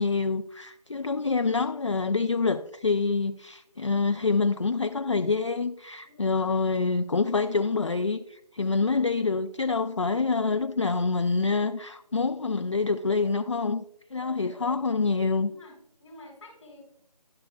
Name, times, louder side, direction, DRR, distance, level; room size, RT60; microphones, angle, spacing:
voice 1, 0.0-13.8 14.1-15.5, left 4 dB, 45° left, 0.4 m, -26 dB
voice 2, 6.0-6.6 14.2-14.8 15.4-15.7 16.0-16.8, left 3 dB, 10° left, 4.1 m, -49 dB
12.5 x 11.5 x 2.4 m
figure-of-eight pair, 170°, 21 cm